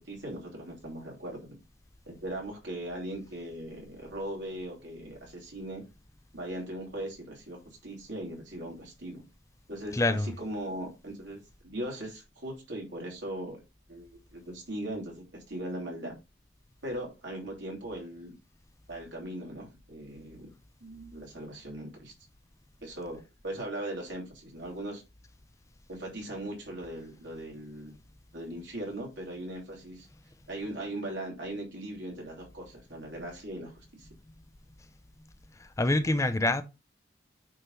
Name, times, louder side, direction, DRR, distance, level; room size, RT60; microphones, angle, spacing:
voice 1, 0.0-1.5 2.1-5.8 6.3-9.2 9.7-13.6 13.9-16.1 16.8-18.4 18.9-20.5 20.8-22.1 22.8-25.0 25.9-27.9 28.3-30.1 30.5-34.1, right 1 dB, 90° right, 3.2 m, -39 dB
voice 2, 9.9-10.3 35.6-36.6, left 2 dB, 15° left, 0.5 m, -26 dB
9.1 x 3.7 x 4.0 m
head